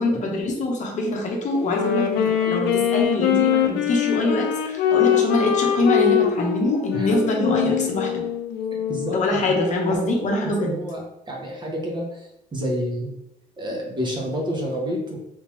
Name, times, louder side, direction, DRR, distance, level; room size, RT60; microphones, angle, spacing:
voice 1, 0.0-8.1 9.1-10.7, left 2 dB, 45° left, 0 dB, 0.8 m, -24 dB
Wind instrument woodwind instrument, 1.5-10.2, left 9 dB, 85° left, 0.5 m, -23 dB
voice 2, 8.9-9.6 9.9-10.1 10.4-13.1 13.6-15.2, equal, 25° right, -1 dB, 0.9 m, -29 dB
3.5 x 2.9 x 3.0 m, 0.93 s
cardioid pair, 110°, 17 cm